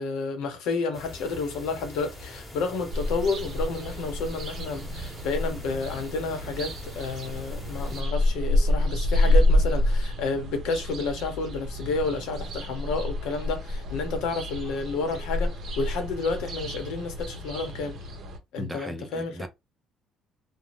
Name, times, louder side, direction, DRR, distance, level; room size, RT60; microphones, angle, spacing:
voice 1, 0.0-18.0 18.5-19.4, left 4 dB, 90° left, 0.9 m, -30 dB
sound 1, 0.9-8.0, left 1 dB, 20° left, 1.2 m, -43 dB
sound 2, 2.9-18.4, left 1 dB, 55° right, 0.8 m, -28 dB
voice 2, 18.6-19.5, right 1 dB, 10° right, 0.6 m, -37 dB
2.6 x 2.2 x 3.1 m
cardioid pair, 110°, 0 cm